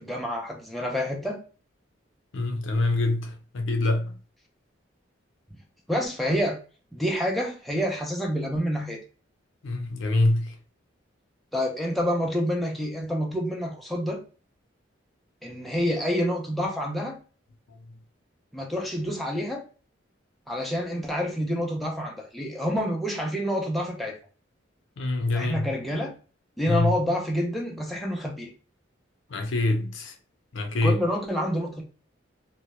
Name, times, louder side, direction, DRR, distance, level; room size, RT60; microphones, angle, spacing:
voice 1, 0.0-1.4 5.9-6.6 6.9-9.0 11.5-14.2 15.4-17.2 18.5-19.6 20.5-24.2 25.3-26.1 26.6-28.5 30.8-31.8, equal, ahead, 0.4 m, -28 dB
voice 2, 2.3-4.1 9.6-10.5 25.0-25.7 26.7-26.9 29.3-30.1 30.5-31.0, left 2 dB, 75° left, 0.5 m, -25 dB
2.1 x 2.0 x 2.8 m
head